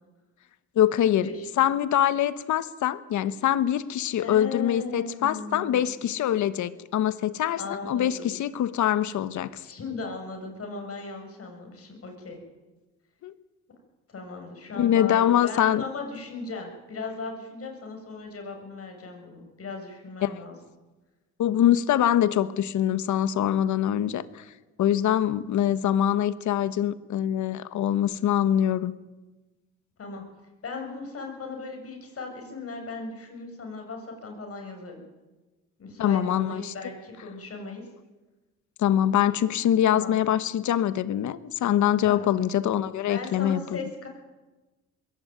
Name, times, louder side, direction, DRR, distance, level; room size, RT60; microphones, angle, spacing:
voice 1, 0.7-1.3 1.6-9.6 13.2-13.3 14.8-15.8 20.2-20.4 21.4-24.4 24.8-28.9 36.0-36.7 38.8-43.6, left 11 dB, 75° left, 15 dB, 1.3 m, -24 dB
voice 2, 4.2-5.9 7.6-8.3 9.6-12.4 14.1-20.6 30.0-30.2 30.6-35.0 35.8-37.9 39.9-40.2 42.0-42.3 43.1-44.1, left 3 dB, 50° left, 3 dB, 7.3 m, -37 dB
21.5 x 17.0 x 9.4 m, 1.1 s
cardioid pair, 90°, 30 cm